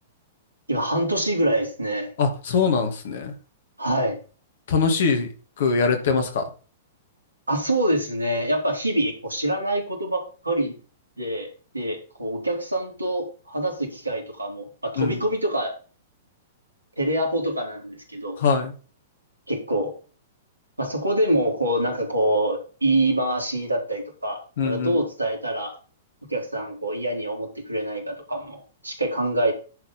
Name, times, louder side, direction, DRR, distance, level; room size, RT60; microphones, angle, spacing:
voice 1, 0.7-2.1 3.8-4.2 7.5-10.7 11.2-11.5 11.7-15.7 17.0-18.4 19.5-19.9 20.8-25.7 26.3-29.5, right 1 dB, 85° right, 2 dB, 3.4 m, -25 dB
voice 2, 2.2-3.3 4.7-5.3 5.6-6.5 15.0-15.2 18.4-18.7 24.6-25.0, left 5 dB, 55° left, 5 dB, 2.7 m, -22 dB
11.0 x 4.7 x 5.5 m, 0.36 s
figure-of-eight pair, 105°, 0 cm